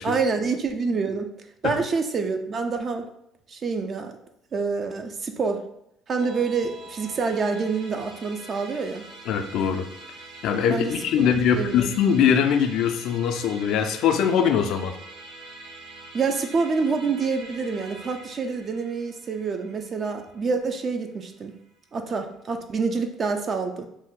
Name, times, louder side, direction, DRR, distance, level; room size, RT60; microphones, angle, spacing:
voice 1, 0.0-1.3 1.6-3.1 3.5-4.2 4.5-5.6 6.1-9.1 10.7-11.8 16.1-21.5 21.9-23.9, right 4 dB, 45° right, 6 dB, 0.3 m, -27 dB
Musical instrument, 6.2-21.7, right 2 dB, 85° right, 0.6 m, -45 dB
voice 2, 9.3-9.9 10.4-14.9, left 7 dB, 70° left, 7 dB, 0.3 m, -22 dB
2.5 x 2.1 x 3.6 m, 0.79 s
supercardioid pair, 80°, 0 cm